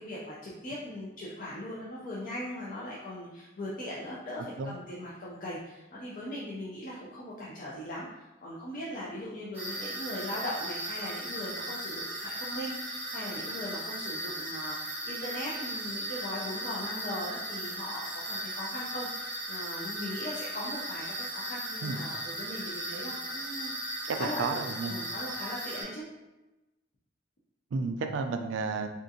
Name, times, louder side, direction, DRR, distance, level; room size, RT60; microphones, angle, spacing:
voice 1, 0.0-24.6 24.9-26.0, left 1 dB, 40° left, -7 dB, 0.5 m, -39 dB
sound 1, 9.5-25.8, right 1 dB, 10° right, 0.9 m, -37 dB
voice 2, 24.1-25.0 27.7-28.9, right 4 dB, 65° right, 6 dB, 0.3 m, -32 dB
3.6 x 2.4 x 2.6 m, 1.0 s
head